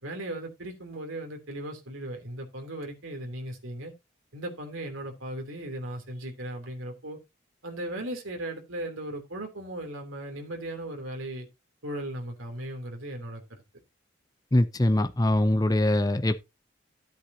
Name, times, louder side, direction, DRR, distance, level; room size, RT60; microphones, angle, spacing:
voice 1, 0.0-3.9 4.3-7.2 7.6-11.5 11.8-13.6, right 1 dB, 85° right, 3.2 m, -37 dB
voice 2, 14.5-16.4, left 1 dB, 20° left, 0.6 m, -23 dB
13.5 x 8.0 x 2.8 m
head